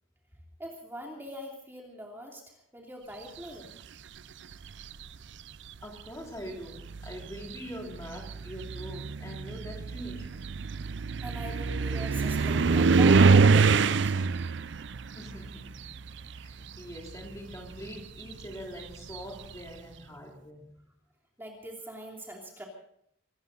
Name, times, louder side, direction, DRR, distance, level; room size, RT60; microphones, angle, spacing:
voice 1, 0.6-3.7 10.9-14.3 21.4-22.7, equal, 10° right, 2.8 m, -43 dB
sound 1, 4.5-5.1 6.1-6.2 6.7-16.6 16.9-19.5, right 4 dB, 60° right, 0.5 m, -25 dB
voice 2, 5.8-10.5 15.1-15.9 16.4-20.9, equal, 15° left, 3.1 m, -43 dB
24.5 x 14.0 x 4.0 m
head